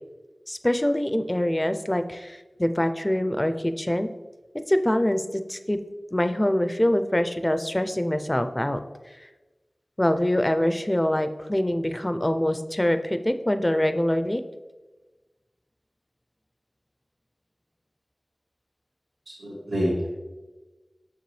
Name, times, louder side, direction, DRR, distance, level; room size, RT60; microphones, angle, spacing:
voice 1, 0.5-4.1 4.7-5.2 5.5-5.8 6.1-8.8 10.0-14.4, left 1 dB, 20° left, 9 dB, 0.4 m, -24 dB
voice 2, 19.3-20.1, equal, 80° right, -8 dB, 2.1 m, -27 dB
6.7 x 6.6 x 3.2 m, 1.2 s
wide cardioid pair, 60°, 0 cm